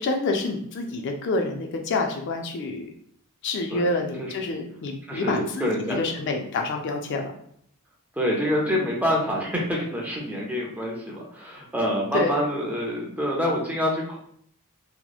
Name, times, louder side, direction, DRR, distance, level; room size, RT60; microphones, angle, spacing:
voice 1, 0.0-2.9 3.4-5.7 6.0-7.3 12.1-12.3, left 3 dB, 55° left, 3 dB, 0.3 m, -27 dB
voice 2, 5.1-6.1 8.2-14.2, equal, 5° right, -3 dB, 0.5 m, -26 dB
2.8 x 2.0 x 2.3 m, 0.67 s
head